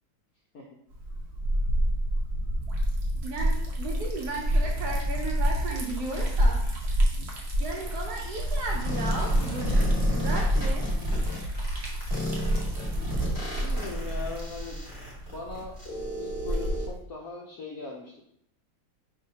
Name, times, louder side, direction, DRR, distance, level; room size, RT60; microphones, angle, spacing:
Liquid, 0.9-17.0, equal, 80° right, 0.5 m, -28 dB
voice 1, 3.2-6.6 7.1-7.2 7.6-10.8, right 2 dB, 65° right, -1 dB, 1.0 m, -35 dB
sound 1, 6.0-15.2, left 1 dB, 40° left, 1.0 m, -51 dB
sound 2, 8.9-11.4 12.1-16.9, equal, 15° left, 1.0 m, -35 dB
voice 2, 13.6-14.8 15.3-15.7 16.2-18.2, left 4 dB, 70° left, -3 dB, 0.8 m, -39 dB
5.1 x 3.2 x 2.8 m, 0.71 s
omnidirectional pair, 2.2 m